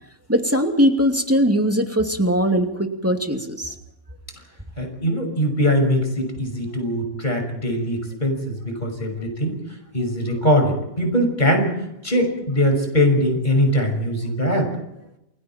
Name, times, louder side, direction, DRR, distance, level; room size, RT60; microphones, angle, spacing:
voice 1, 0.3-3.7, equal, 10° right, 3 dB, 2.7 m, -20 dB
voice 2, 4.8-9.6 9.9-11.8 12.0-14.7, equal, 40° left, 4 dB, 6.3 m, -21 dB
29.5 x 21.5 x 4.5 m, 0.86 s
omnidirectional pair, 1.3 m